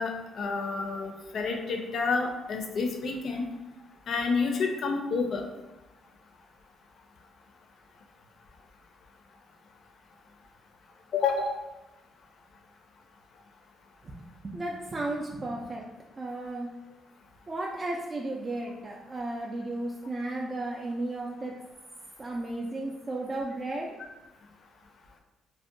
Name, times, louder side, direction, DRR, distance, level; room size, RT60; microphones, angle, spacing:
voice 1, 0.0-3.4 4.1-5.4 11.1-11.5, left 4 dB, 60° left, 3 dB, 0.4 m, -29 dB
voice 2, 14.4-15.8 16.2-16.7 17.5-21.5 22.2-23.9, right 2 dB, 30° right, -2 dB, 0.3 m, -34 dB
2.6 x 2.1 x 2.5 m, 1.0 s
cardioid pair, 90°, 0 cm